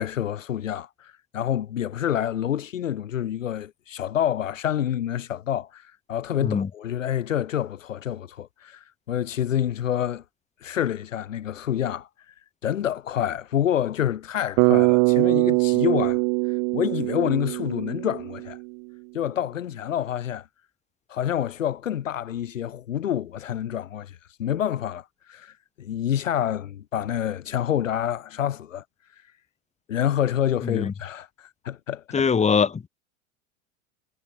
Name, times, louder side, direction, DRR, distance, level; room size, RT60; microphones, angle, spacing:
voice 1, 0.0-10.2 10.6-12.1 12.6-16.2 16.7-18.6 19.1-20.5 21.1-28.8 29.9-32.3, left 10 dB, 70° left, 1.6 m, -27 dB
Bass guitar, 14.6-18.7, right 40 dB or more, 45° right, 1.4 m, -22 dB
voice 2, 30.6-30.9 32.1-32.9, left 6 dB, 15° left, 2.3 m, -22 dB
figure-of-eight pair, 85°, 40 cm